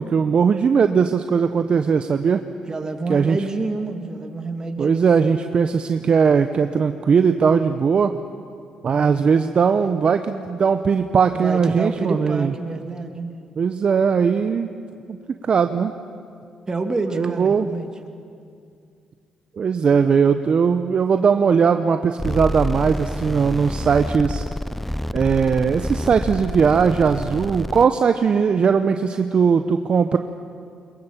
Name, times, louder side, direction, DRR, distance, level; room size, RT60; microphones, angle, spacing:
voice 1, 0.0-2.4 3.1-3.4 4.8-8.2 8.8-12.5 13.6-14.7 15.1-15.2 15.4-15.9 17.1-17.7 19.6-24.4 25.1-30.2, right 6 dB, 50° right, 8 dB, 0.9 m, -19 dB
voice 2, 2.6-5.1 11.3-13.3 16.7-17.9, right 3 dB, 30° right, 5 dB, 2.6 m, -28 dB
sound 1, 22.2-27.8, left 1 dB, 5° left, 0.6 m, -28 dB
22.0 x 22.0 x 7.4 m, 2.4 s
supercardioid pair, 60°, 2 cm